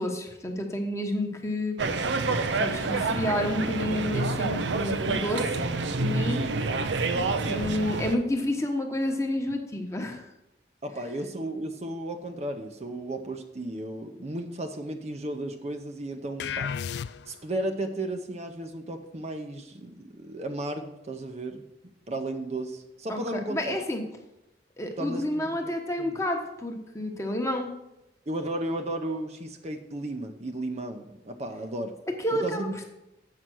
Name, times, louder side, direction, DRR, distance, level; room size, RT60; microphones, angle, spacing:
voice 1, 0.0-1.8 2.6-5.5 5.9-6.5 7.4-10.2 23.1-24.0 24.8-27.7 32.2-32.7, left 1 dB, 15° left, 3 dB, 1.0 m, -29 dB
sound 1, 1.8-8.2, right 3 dB, 85° right, 0.6 m, -28 dB
voice 2, 7.1-7.7 10.8-16.7 17.3-21.6 22.1-23.8 25.0-25.5 26.0-26.1 28.3-32.0 32.3-32.8, right 1 dB, 40° right, 6 dB, 0.6 m, -34 dB
sound 2, 16.4-17.6, left 7 dB, 70° left, 0.3 m, -33 dB
7.7 x 5.6 x 6.2 m, 0.89 s
head